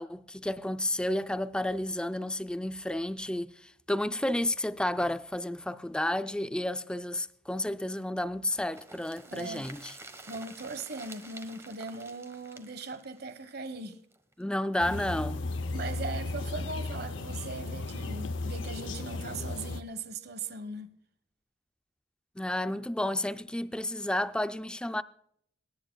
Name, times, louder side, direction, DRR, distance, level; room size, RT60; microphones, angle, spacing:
voice 1, 0.0-9.9 14.4-15.4 22.4-25.0, left 1 dB, 5° left, 0.4 m, -31 dB
sound 1, 8.7-14.4 14.7-14.8 15.1-15.2, right 2 dB, 15° right, 1.2 m, -50 dB
voice 2, 9.3-9.7 10.3-14.0 15.7-20.9, right 3 dB, 60° right, 1.3 m, -39 dB
sound 2, 14.8-19.8, left 2 dB, 85° left, 0.7 m, -35 dB
26.0 x 10.5 x 2.3 m
head